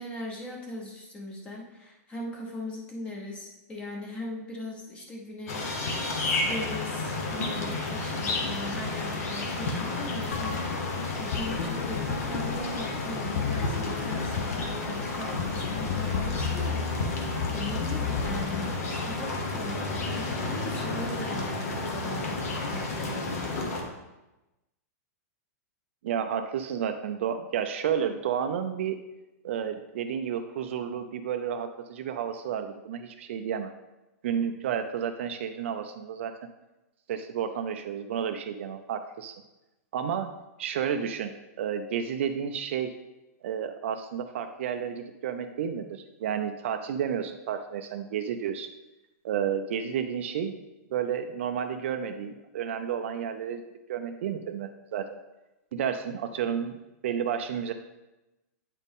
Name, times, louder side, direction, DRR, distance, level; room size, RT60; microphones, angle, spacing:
voice 1, 0.0-5.8 6.4-23.4, left 1 dB, 10° left, 0 dB, 0.8 m, -39 dB
sound 1, 5.5-23.8, left 2 dB, 65° left, 1.2 m, -31 dB
sound 2, 10.3-18.4, left 6 dB, 45° left, 0.5 m, -33 dB
voice 2, 26.0-29.0 29.4-33.7 34.2-36.3 37.1-39.4 39.9-40.3 40.6-42.9 43.4-48.7 49.2-50.6 50.9-55.1 55.7-56.8 57.0-57.7, right 8 dB, 50° right, 7 dB, 0.4 m, -31 dB
8.9 x 4.1 x 3.5 m, 1.0 s
supercardioid pair, 175°, 9 cm